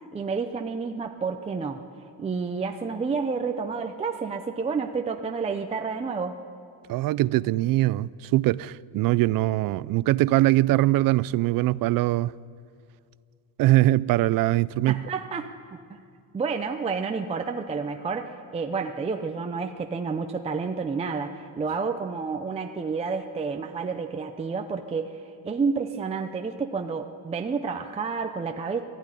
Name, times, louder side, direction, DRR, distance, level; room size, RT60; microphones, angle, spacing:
voice 1, 0.1-1.8 2.2-6.4 14.9-15.5 15.9-16.0 16.3-25.2 25.4-28.8, right 5 dB, 15° right, 0.6 m, -30 dB
voice 2, 6.9-12.3 13.6-15.0, right 17 dB, 60° right, 0.5 m, -22 dB
19.0 x 14.0 x 9.9 m
cardioid pair, 180°, 38 cm